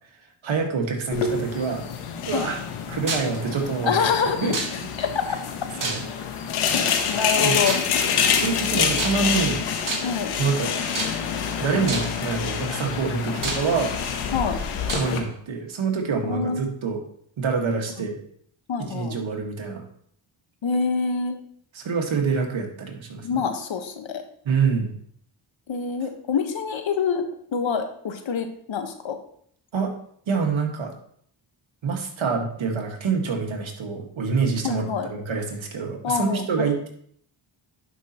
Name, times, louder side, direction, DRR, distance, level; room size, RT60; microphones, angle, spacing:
voice 1, 0.4-1.8 2.3-2.6 2.9-3.9 4.4-4.5 5.8-6.0 7.4-7.7 8.3-9.6 10.4-10.7 11.6-14.0 14.9-17.0 17.4-18.2 18.9-19.8 21.7-23.3 24.5-24.9 29.7-29.9 30.3-30.9 31.8-36.9, right 5 dB, 70° right, 2 dB, 1.8 m, -26 dB
sound 1, 1.1-15.2, left 6 dB, 90° left, 1.1 m, -27 dB
sound 2, 3.1-3.4 4.5-5.0 5.8-6.3 7.6-8.0 8.9-9.4 9.9-10.3 10.9-11.4 11.9-12.2 12.9-13.0 13.4-14.1 14.9-15.1, right 3 dB, 40° right, 1.9 m, -29 dB
voice 2, 3.8-4.5 5.0-5.4 6.8-7.8 10.0-10.3 14.3-14.6 16.2-16.7 18.7-19.1 20.6-21.3 23.2-24.2 25.7-29.2 34.6-35.1 36.0-36.5, left 6 dB, 65° left, 6 dB, 1.3 m, -26 dB
11.0 x 5.4 x 3.0 m, 0.64 s
cardioid pair, 55°, 49 cm